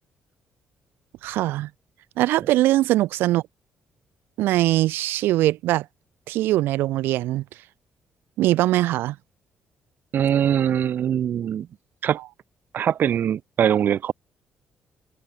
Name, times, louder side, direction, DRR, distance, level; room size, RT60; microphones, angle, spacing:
voice 1, 1.2-1.7 2.2-3.4 4.4-5.9 6.3-7.4 8.4-9.2, right 16 dB, 80° right, 5.4 m, -21 dB
voice 2, 10.1-11.7 12.0-12.2 12.7-14.1, right 9 dB, 65° right, 2.2 m, -22 dB
supercardioid pair, 55°, 4 cm